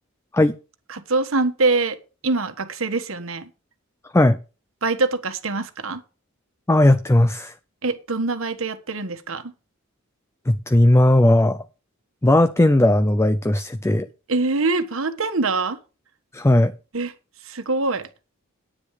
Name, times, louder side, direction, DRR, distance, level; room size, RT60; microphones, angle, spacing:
voice 1, 0.9-2.0 2.2-3.5 4.8-6.0 7.8-9.5 14.3-15.8 16.9-17.1 17.4-18.1, right 3 dB, 70° right, 1.5 m, -24 dB
voice 2, 6.7-7.5 10.5-11.6 12.2-14.1 16.3-16.7, left 1 dB, 15° left, 0.4 m, -17 dB
10.0 x 9.7 x 4.9 m
head